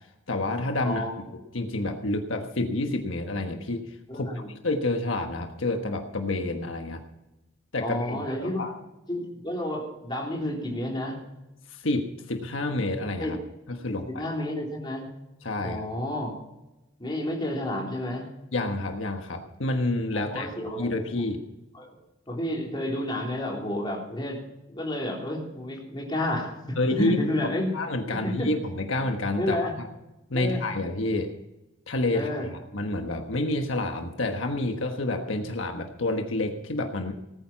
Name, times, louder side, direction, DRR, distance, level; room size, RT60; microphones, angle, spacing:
voice 1, 0.3-1.1 1.5-4.3 4.6-7.0 7.7-8.7 11.7-13.4 13.7-14.2 15.4-15.8 18.5-21.4 26.8-27.2 27.7-29.9 30.3-31.3 31.9-37.1, left 2 dB, 80° left, 4 dB, 1.3 m, -29 dB
voice 2, 4.1-4.5 7.8-8.6 9.1-11.2 13.2-13.4 14.1-15.1 15.6-16.3 17.0-18.3 20.1-21.2 21.7-21.9 22.3-24.4 24.7-27.7 28.1-28.5 29.4-29.7 30.3-30.6 32.1-32.5, left 1 dB, 20° left, -1 dB, 3.5 m, -30 dB
18.5 x 9.3 x 5.9 m, 0.97 s
head